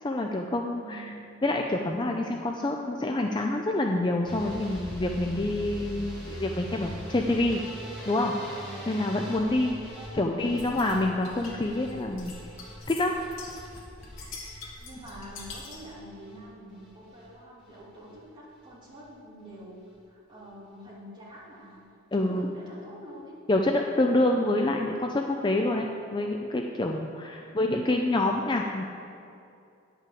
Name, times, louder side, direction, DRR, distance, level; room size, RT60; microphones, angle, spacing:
voice 1, 0.0-1.1 1.4-7.6 8.1-8.3 8.9-12.3 12.9-13.2 22.1-22.5 23.5-28.8, left 2 dB, 20° left, 2 dB, 0.4 m, -27 dB
voice 2, 0.6-1.1 10.0-10.3 14.8-19.8 20.0-21.8 22.1-23.3 27.4-27.5, equal, 20° right, -8 dB, 2.9 m, -46 dB
sound 1, 4.2-16.4 16.7-17.3 17.6-18.2 18.5-18.7 19.0-19.1 19.4-19.5, equal, 5° left, 3.0 m, -42 dB
sound 2, 10.6-15.9, left 3 dB, 60° left, 1.8 m, -45 dB
10.5 x 5.7 x 7.7 m, 2.5 s
head